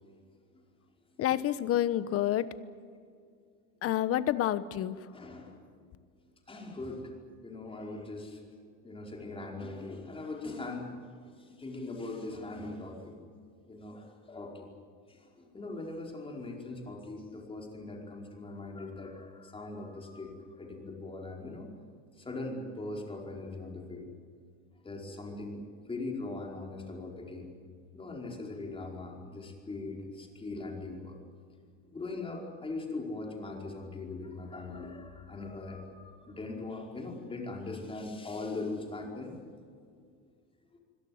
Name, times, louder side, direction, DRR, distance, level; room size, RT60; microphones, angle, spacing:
voice 1, 1.2-2.5 3.8-5.0, left 12 dB, 40° left, 15 dB, 1.1 m, -28 dB
voice 2, 5.1-5.6 6.5-7.1 7.4-8.4 8.8-10.9 11.4-13.1 13.7-14.7 15.1-21.7 22.2-24.1 24.8-25.6 25.9-27.5 27.9-31.2 31.9-39.4, left 2 dB, 15° left, 1 dB, 4.8 m, -40 dB
25.0 x 17.5 x 9.5 m, 2.2 s
supercardioid pair, 130°, 36 cm